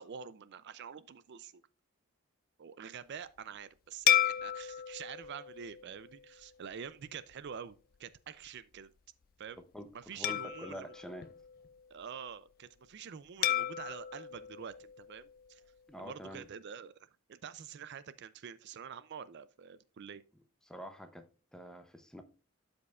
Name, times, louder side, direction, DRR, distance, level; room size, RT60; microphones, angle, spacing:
voice 1, 0.0-1.6 2.6-8.9 9.4-9.6 9.9-10.9 11.9-15.6 16.0-20.2, right 7 dB, 55° right, 0.4 m, -47 dB
sound 1, 4.1-6.7 7.3-7.5 10.2-12.0 13.4-15.7, left 10 dB, 40° left, 0.4 m, -34 dB
voice 2, 9.7-11.3 15.9-16.5 20.7-22.2, equal, 5° left, 0.8 m, -46 dB
12.0 x 5.3 x 2.4 m
head